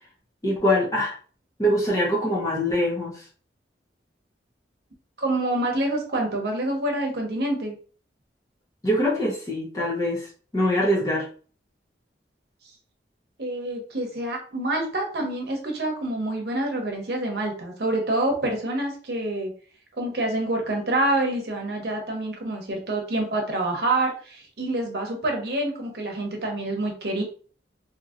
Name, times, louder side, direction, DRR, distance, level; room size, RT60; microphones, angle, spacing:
voice 1, 0.4-1.2 1.6-3.2 8.8-10.3 10.5-11.3, equal, 20° left, -4 dB, 0.7 m, -23 dB
voice 2, 5.2-7.7 13.4-19.5 20.0-27.2, right 1 dB, 65° right, 2 dB, 0.8 m, -27 dB
2.7 x 2.7 x 2.4 m, 0.42 s
head